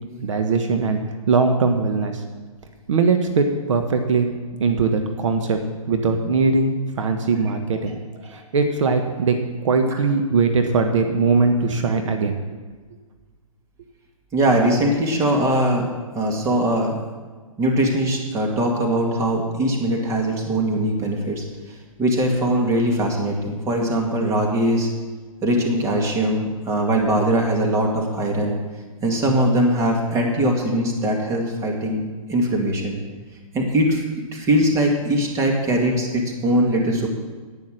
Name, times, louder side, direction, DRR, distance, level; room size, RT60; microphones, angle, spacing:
voice 1, 0.2-1.0 1.3-2.2 2.9-4.3 4.6-5.6 5.9-8.0 8.3-9.4 9.6-12.4, right 4 dB, 60° right, 5 dB, 1.4 m, -20 dB
voice 2, 14.3-15.9 16.1-17.0 17.6-21.4 22.0-24.9 25.4-28.6 29.0-32.0 32.3-33.0 33.5-34.0 34.3-37.1, right 1 dB, 15° right, 1 dB, 2.1 m, -21 dB
10.5 x 9.6 x 6.5 m, 1.4 s
hypercardioid pair, 140°, 18 cm